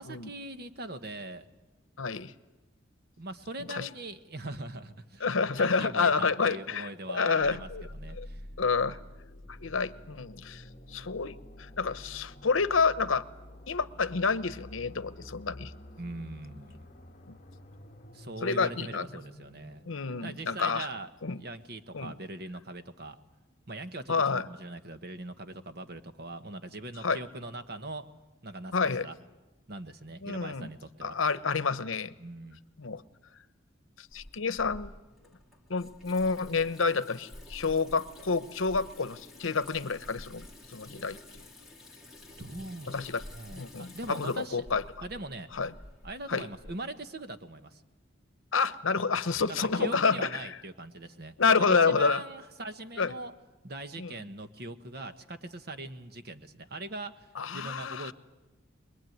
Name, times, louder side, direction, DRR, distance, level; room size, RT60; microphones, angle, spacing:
voice 1, 0.0-1.5 3.2-8.4 16.0-16.9 18.1-19.8 20.2-23.2 23.7-28.1 28.4-29.1 29.7-31.2 32.2-32.6 42.4-44.6 45.0-45.5 46.0-47.8 49.5-53.3 53.6-57.3 57.5-58.1, right 2 dB, 50° right, 9 dB, 1.2 m, -41 dB
voice 2, 2.0-2.3 3.7-3.9 5.2-7.9 8.2-8.3 8.6-9.0 9.6-10.6 10.9-13.2 13.7-15.7 17.3-17.4 18.4-19.1 19.9-20.9 21.2-21.4 21.9-22.2 24.1-24.5 27.0-27.2 28.7-29.1 30.2-30.7 31.0-32.1 32.8-33.0 34.0-34.9 35.7-41.2 42.9-43.2 43.5-44.8 45.5-45.7 46.3-46.5 48.5-50.4 51.4-52.2 53.0-53.1 54.0-54.2 57.4-58.1, left 4 dB, 85° left, 14 dB, 0.9 m, -29 dB
sound 1, 7.4-21.2, left 1 dB, 35° left, 1.7 m, -48 dB
Water tap faucet / Sink (filling or washing), 34.1-46.7, left 1 dB, ahead, 2.5 m, -50 dB
24.0 x 21.5 x 9.4 m, 1.1 s
head